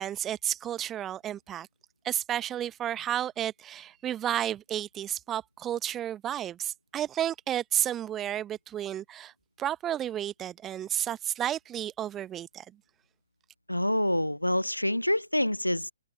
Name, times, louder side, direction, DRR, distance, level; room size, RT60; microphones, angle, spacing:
voice 1, 0.0-1.7 2.0-9.3 9.6-12.6, right 11 dB, 15° right, 1.0 m, -32 dB
voice 2, 13.7-15.9, left 1 dB, 85° left, 0.5 m, -27 dB
figure-of-eight pair, 130°, 0 cm